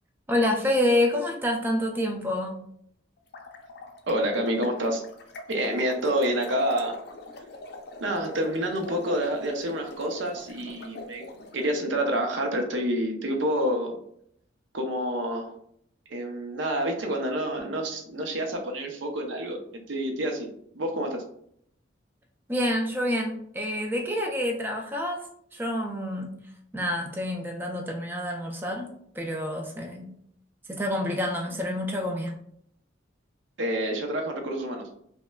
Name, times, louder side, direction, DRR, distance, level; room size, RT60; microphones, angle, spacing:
voice 1, 0.3-2.6 22.5-25.3 25.5-26.3 26.7-30.1 30.7-32.3, left 1 dB, 10° right, 2 dB, 0.3 m, -28 dB
sound 1, 3.2-11.7, left 2 dB, 55° left, 0.4 m, -44 dB
voice 2, 4.1-5.0 5.5-7.0 8.0-11.2 11.5-13.9 14.7-15.5 16.1-20.5 20.7-21.2 33.6-35.0, right 1 dB, 75° right, 3 dB, 0.7 m, -28 dB
5.3 x 2.2 x 2.2 m, 0.69 s
head